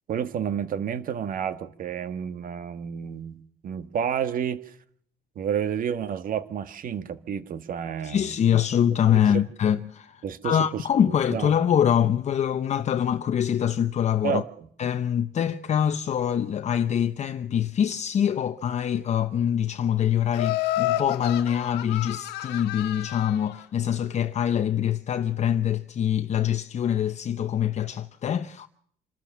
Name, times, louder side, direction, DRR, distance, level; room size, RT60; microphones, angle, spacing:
voice 1, 0.1-4.6 5.3-8.3 9.1-9.4 10.2-11.5 14.2-14.7, right 8 dB, 55° right, 1.6 m, -30 dB
voice 2, 8.0-14.4 14.8-28.7, left 9 dB, 40° left, 0.8 m, -24 dB
Laughter, 20.3-23.5, left 15 dB, 80° left, 1.5 m, -30 dB
26.5 x 13.5 x 7.3 m
cardioid pair, 110°, 17 cm